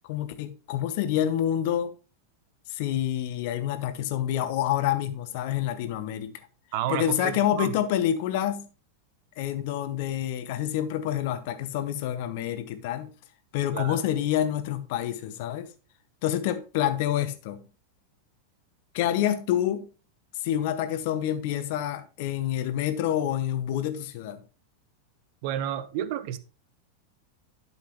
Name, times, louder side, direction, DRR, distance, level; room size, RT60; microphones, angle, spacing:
voice 1, 0.1-1.9 2.7-6.3 6.9-8.7 9.4-13.1 13.5-15.7 16.2-17.6 18.9-19.9 20.4-24.4, left 11 dB, 50° left, 0.9 m, -27 dB
voice 2, 6.7-7.7 13.7-14.0 25.4-26.4, right 11 dB, 45° right, 0.7 m, -31 dB
11.5 x 5.7 x 3.1 m
figure-of-eight pair, 90°, 0 cm